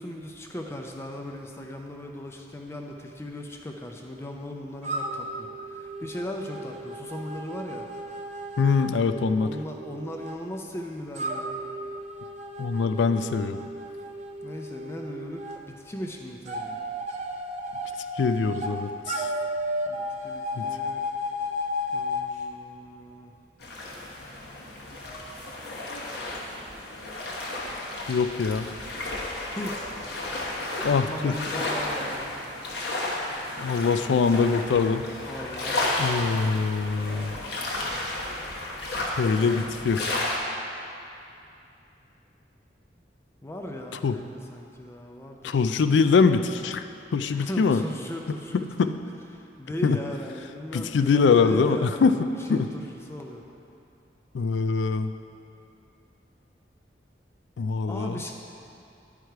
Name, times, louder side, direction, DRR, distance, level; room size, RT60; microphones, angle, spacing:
voice 1, 0.0-7.9 9.4-11.6 14.4-16.8 19.9-21.1 21.9-23.4 29.5-29.9 30.8-32.4 35.2-36.7 43.4-45.6 47.3-49.0 49.3-53.4 57.9-58.3, left 1 dB, 15° left, 1 dB, 0.4 m, -38 dB
sound 1, 4.8-10.4 11.1-15.6 16.5-18.7 19.1-22.3, equal, 40° right, 0.6 m, -34 dB
voice 2, 8.6-9.5 12.6-13.6 18.2-19.3 20.6-20.7 28.1-28.7 30.8-31.4 33.6-35.0 36.0-37.3 39.2-40.0 44.0-44.1 45.4-46.8 47.1-47.8 48.8-48.9 49.8-50.0 50.7-52.2 52.5-52.7 54.3-55.1 57.6-58.2, left 5 dB, 85° left, 10 dB, 0.4 m, -23 dB
sound 2, 23.6-40.4, left 2 dB, 65° left, 1.1 m, -33 dB
10.0 x 4.8 x 4.6 m, 2.7 s
head